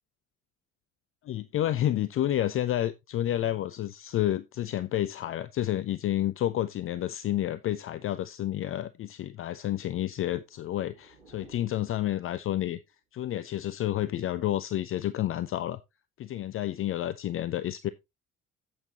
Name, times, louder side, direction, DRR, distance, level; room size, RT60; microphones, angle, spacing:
voice 1, 1.2-12.8 13.1-15.8 16.2-17.9, left 12 dB, 35° left, 0.6 m, -30 dB
sound 1, 10.3-12.9, right 4 dB, 75° right, 2.1 m, -58 dB
10.5 x 8.2 x 2.9 m
figure-of-eight pair, 55°, 37 cm